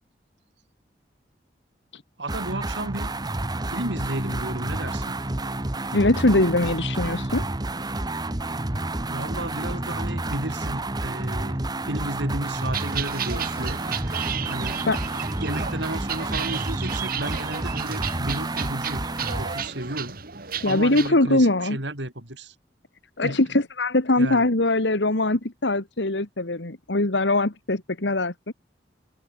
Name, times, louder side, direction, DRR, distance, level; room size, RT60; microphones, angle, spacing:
voice 1, 2.2-3.1 3.7-5.2 9.1-13.8 14.4-14.8 15.4-19.1 19.3-20.2 20.6-22.5 23.2-23.4 24.2-24.5, right 1 dB, 80° right, 6.0 m, -33 dB
sound 1, 2.3-19.7, right 2 dB, 25° right, 1.3 m, -30 dB
voice 2, 5.9-7.4 14.9-15.0 20.6-21.8 23.2-28.5, left 2 dB, 85° left, 2.0 m, -22 dB
sound 2, 12.5-21.1, right 8 dB, 55° right, 3.6 m, -33 dB
head